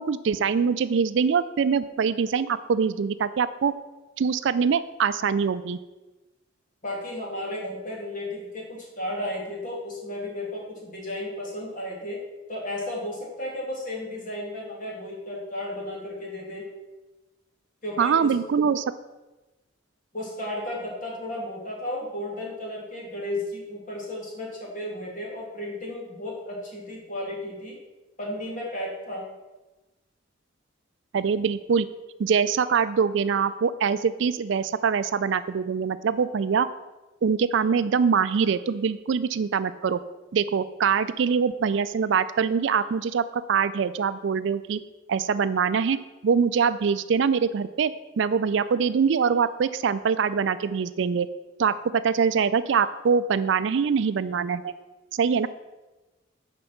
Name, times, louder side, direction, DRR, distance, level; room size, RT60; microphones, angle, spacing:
voice 1, 0.0-3.7 4.2-5.8 18.0-18.8 31.1-31.9 32.2-36.7 37.2-40.0 40.3-44.8 45.1-51.3 51.6-54.7 55.1-55.5, right 6 dB, 60° right, 13 dB, 0.4 m, -24 dB
voice 2, 6.8-12.2 12.5-16.7 17.8-18.3 20.1-27.8 28.2-29.3, left 1 dB, 40° left, -2 dB, 2.4 m, -34 dB
6.8 x 5.3 x 7.1 m, 1.1 s
head